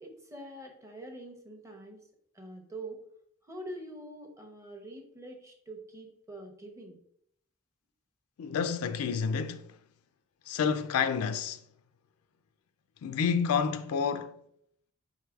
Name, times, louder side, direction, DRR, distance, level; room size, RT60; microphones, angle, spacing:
voice 1, 0.0-2.0 2.3-3.0 3.4-7.0, right 1 dB, 15° right, 0.6 m, -45 dB
voice 2, 8.4-9.6 10.5-11.6 13.0-14.4, left 6 dB, 90° left, 0.3 m, -29 dB
4.7 x 3.7 x 2.3 m
head